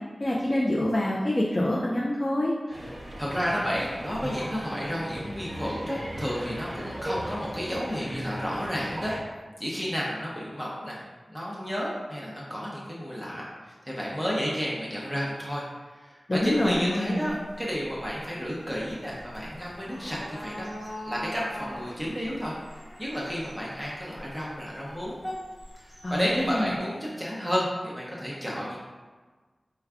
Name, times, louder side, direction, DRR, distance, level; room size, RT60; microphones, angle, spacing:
voice 1, 0.2-2.5 16.3-17.3 26.0-26.7, left 1 dB, 35° left, -4 dB, 0.5 m, -26 dB
voice 2, 2.7-9.1 9.6-11.0 11.3-15.6 15.9-22.6 23.0-25.3 25.8-28.8, equal, ahead, -6 dB, 0.7 m, -32 dB
sound 1, 2.7-9.2, right 1 dB, 45° right, 0.9 m, -37 dB
sound 2, 16.3-26.8, equal, 60° left, 1.1 m, -44 dB
4.6 x 2.2 x 3.5 m, 1.3 s
wide cardioid pair, 80°, 0 cm